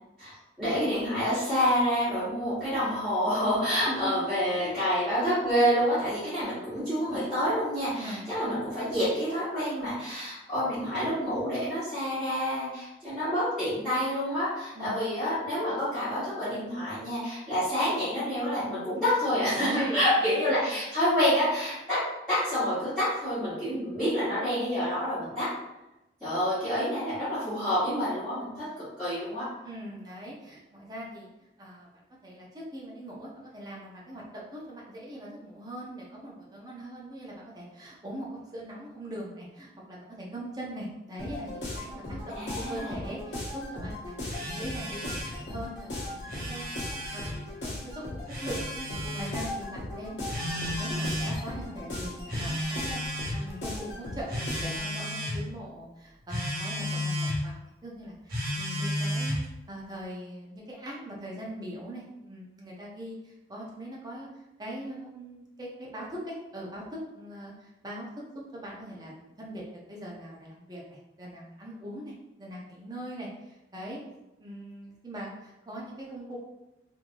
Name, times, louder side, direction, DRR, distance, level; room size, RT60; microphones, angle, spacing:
voice 1, 0.2-22.0 22.3-25.5 26.2-29.5 42.3-42.9, equal, ahead, -17 dB, 1.3 m, -28 dB
voice 2, 19.5-20.3 29.6-31.3 31.6-31.9 32.2-38.3 38.5-44.1 44.4-46.8 47.1-48.7 49.1-53.0 53.4-59.3 59.7-68.1 68.3-69.6 69.9-72.1 72.4-74.0 74.4-76.4, right 1 dB, 20° right, -4 dB, 0.7 m, -41 dB
sound 1, 41.2-54.9, left 1 dB, 65° left, 0.9 m, -38 dB
Telephone, 44.3-45.4 46.1-47.3 48.3-49.3 50.3-51.4 52.3-53.4 54.3-55.4 56.3-57.4 58.3-59.4, left 1 dB, 55° right, 1.0 m, -33 dB
3.2 x 2.6 x 2.5 m, 0.96 s
head